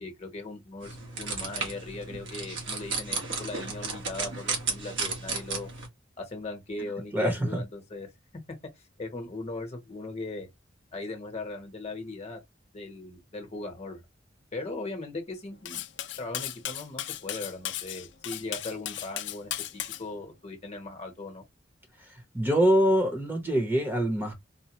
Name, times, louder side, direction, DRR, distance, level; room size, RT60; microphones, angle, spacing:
voice 1, 0.0-5.7 6.2-8.1 9.0-10.5 10.9-12.4 12.7-14.0 14.5-15.9 16.2-21.4, left 2 dB, 35° left, 1.0 m, -39 dB
sound 1, 0.8-5.9, right 4 dB, 70° right, 1.3 m, -34 dB
voice 2, 7.1-7.6 22.3-24.3, equal, 10° right, 0.8 m, -24 dB
Cutlery silverware, 15.6-20.0, left 12 dB, 65° left, 0.5 m, -36 dB
4.2 x 2.1 x 2.9 m
head